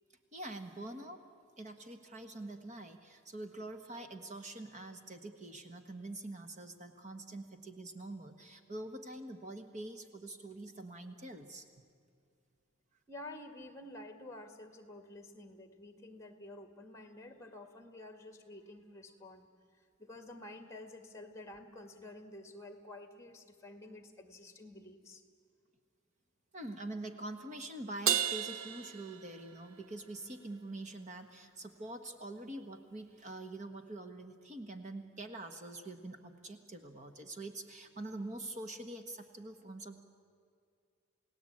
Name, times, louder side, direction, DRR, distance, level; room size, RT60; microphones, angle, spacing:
voice 1, 0.3-1.2 1.6-11.7 26.5-40.0, right 2 dB, 35° right, 6 dB, 1.4 m, -45 dB
voice 2, 13.1-25.2, left 1 dB, 15° left, 7 dB, 1.9 m, -50 dB
Crash cymbal, 28.1-29.8, right 9 dB, 75° right, 0.8 m, -33 dB
29.0 x 17.5 x 8.8 m, 2.3 s
head